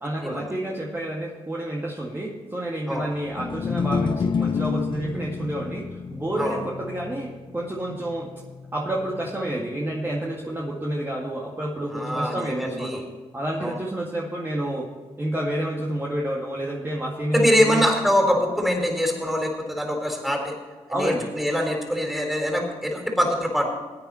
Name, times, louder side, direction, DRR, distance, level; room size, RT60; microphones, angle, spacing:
voice 1, 0.0-8.3 8.7-13.0 13.3-14.9 15.2-17.9 20.9-21.3, right 1 dB, 20° right, -3 dB, 2.0 m, -29 dB
sound 1, 3.3-9.6, left 6 dB, 45° left, 0.5 m, -30 dB
voice 2, 11.9-13.0 13.6-13.7 17.3-20.5 20.9-23.7, equal, ahead, 1 dB, 4.0 m, -23 dB
16.5 x 9.4 x 4.3 m, 1.4 s
cardioid pair, 65°, 11 cm